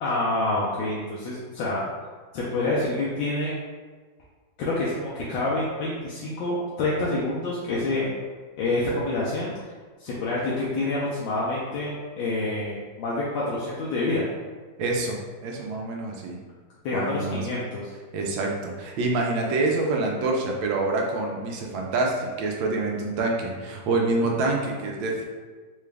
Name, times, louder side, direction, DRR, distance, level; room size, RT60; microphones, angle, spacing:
voice 1, 0.0-1.8 2.3-3.6 4.6-8.1 8.6-9.7 10.0-14.3 16.8-17.8, left 2 dB, 85° left, -7 dB, 1.4 m, -27 dB
voice 2, 14.8-16.4 16.9-17.4 18.1-25.2, right 2 dB, 85° right, 0 dB, 1.4 m, -26 dB
3.9 x 2.3 x 3.2 m, 1.4 s
omnidirectional pair, 2.0 m